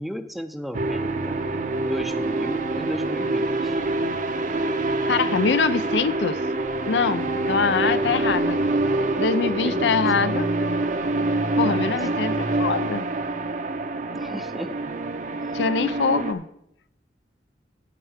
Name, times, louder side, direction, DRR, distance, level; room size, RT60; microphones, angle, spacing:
voice 1, 0.0-1.4 1.8-3.8 7.8-8.2 9.6-10.4 11.6-11.9 14.1-15.0, equal, ahead, 9 dB, 0.5 m, -35 dB
sound 1, 0.7-16.3, right 2 dB, 45° right, 0.6 m, -26 dB
voice 2, 5.1-6.4 6.9-8.6 9.2-10.5 11.6-13.0 15.5-16.4, left 5 dB, 75° left, 13 dB, 0.5 m, -23 dB
12.5 x 4.4 x 6.5 m, 0.79 s
head